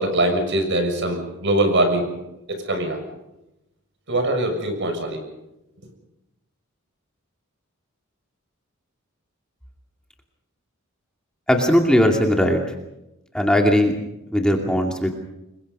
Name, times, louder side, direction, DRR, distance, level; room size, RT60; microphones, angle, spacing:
voice 1, 0.0-2.0 2.7-3.0 4.1-5.2, right 1 dB, 60° right, 5 dB, 6.6 m, -22 dB
voice 2, 11.5-12.6 13.3-14.0 14.3-15.1, equal, 5° left, 2 dB, 2.5 m, -18 dB
27.5 x 23.0 x 5.5 m, 0.90 s
head